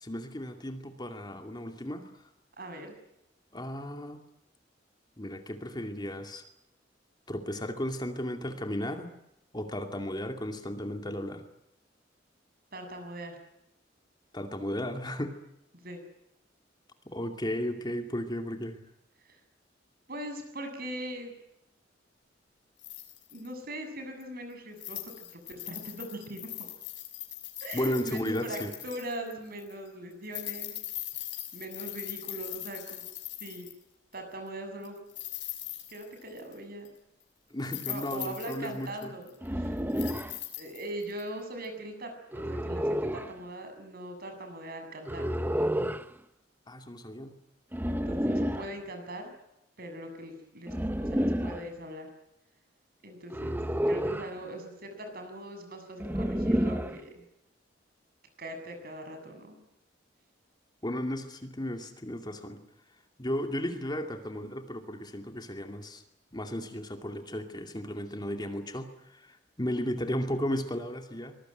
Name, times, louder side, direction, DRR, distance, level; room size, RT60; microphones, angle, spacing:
voice 1, 0.0-2.1 3.5-4.2 5.2-6.4 7.3-9.1 9.5-11.4 14.3-15.3 17.1-18.8 27.7-28.7 37.5-39.1 46.7-47.3 60.8-62.6 63.2-66.0 66.3-71.4, equal, 25° left, 5 dB, 2.5 m, -34 dB
voice 2, 2.6-2.9 12.7-13.4 15.7-16.0 19.3-19.4 20.1-21.3 23.3-26.7 27.6-30.7 31.5-33.0 33.4-33.7 34.1-35.0 35.9-36.9 37.6-39.8 40.6-45.3 47.9-49.3 49.8-52.1 53.0-53.6 53.9-57.3 58.4-59.6, right 1 dB, 55° right, 6 dB, 7.6 m, -41 dB
sound 1, 22.8-23.5 24.2-24.3 24.8-29.3 29.6-29.7 30.2-33.8 34.8-36.5 36.8-36.9 37.6-39.5 39.9-41.2 41.6-41.7, left 14 dB, 75° left, 6.0 m, -40 dB
sound 2, 39.4-40.4 42.3-43.3 45.1-46.1 47.7-48.7 50.7-51.7 53.3-54.3 56.0-57.0, equal, 10° right, 1.0 m, -30 dB
24.5 x 22.0 x 9.3 m, 0.85 s
head